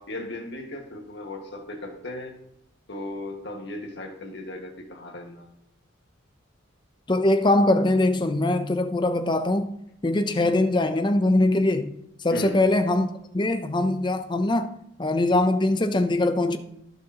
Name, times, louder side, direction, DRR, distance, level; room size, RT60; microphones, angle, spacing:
voice 1, 0.0-2.4 2.9-5.5 12.3-12.6, left 1 dB, 60° left, 1.8 m, -36 dB
voice 2, 7.1-9.7 10.0-11.9 12.2-14.7 15.0-16.6, left 2 dB, 25° left, 0.6 m, -22 dB
17.5 x 6.6 x 2.9 m
head